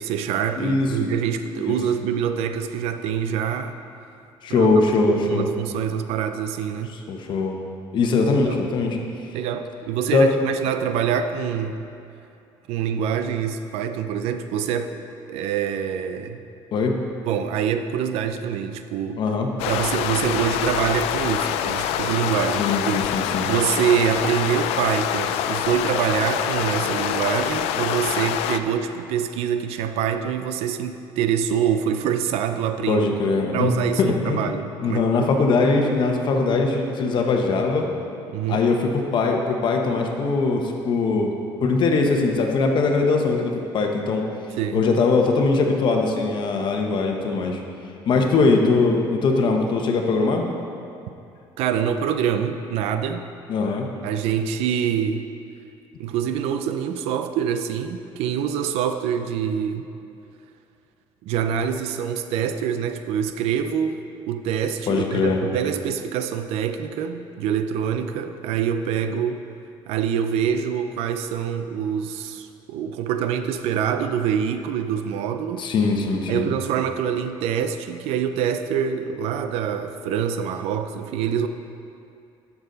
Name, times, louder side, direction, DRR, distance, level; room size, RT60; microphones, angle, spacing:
voice 1, 0.0-3.8 4.5-4.7 5.1-6.9 8.2-8.6 9.3-11.9 12.7-14.9 15.3-16.4 17.2-19.2 19.7-23.1 23.4-33.2 33.5-35.3 38.3-38.6 44.6-44.9 48.1-48.5 51.6-53.2 54.0-55.3 56.0-59.9 61.2-69.4 69.9-75.7 76.3-81.5, right 8 dB, 80° right, 8 dB, 0.6 m, -25 dB
voice 2, 0.6-1.1 1.7-1.8 4.4-5.5 6.9-7.6 7.9-9.0 10.1-10.3 16.7-17.0 19.2-19.5 22.6-23.5 32.9-33.7 34.0-34.5 34.8-37.9 38.5-41.3 41.6-44.2 44.7-47.6 48.1-50.5 53.5-53.9 64.9-65.4 75.6-76.5, left 3 dB, 50° left, 2 dB, 1.1 m, -21 dB
sound 1, 19.6-28.6, left 10 dB, 90° left, 0.4 m, -25 dB
11.0 x 7.0 x 4.0 m, 2.6 s
cardioid pair, 125°, 10 cm